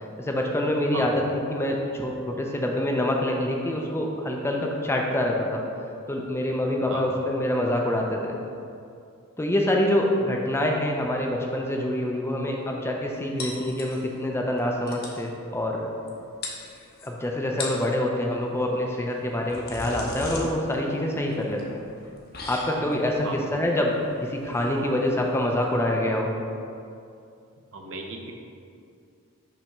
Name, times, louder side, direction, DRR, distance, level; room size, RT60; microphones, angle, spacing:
voice 1, 0.2-1.2 1.5-5.6 6.1-8.4 9.4-15.9 17.0-21.8 22.5-23.9 24.2-26.3, left 1 dB, 10° left, 0 dB, 0.5 m, -26 dB
sound 1, 13.4-14.3 14.6-14.7 14.9-15.2 16.1-16.2 16.4-17.1 17.5-17.9 19.1-25.7, left 2 dB, 45° left, 0.8 m, -38 dB
voice 2, 27.7-28.3, right 3 dB, 60° right, 2 dB, 0.7 m, -35 dB
5.8 x 3.4 x 5.4 m, 2.4 s
head